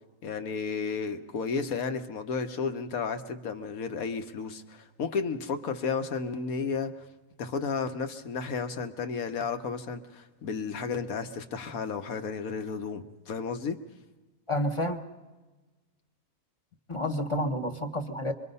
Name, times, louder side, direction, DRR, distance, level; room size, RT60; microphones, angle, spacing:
voice 1, 0.2-6.9 7.4-13.8, left 5 dB, 65° left, 8 dB, 1.4 m, -33 dB
voice 2, 14.5-15.0 16.9-18.3, left 1 dB, 25° left, 5 dB, 1.0 m, -29 dB
25.0 x 23.0 x 5.5 m, 1.2 s
omnidirectional pair, 1.6 m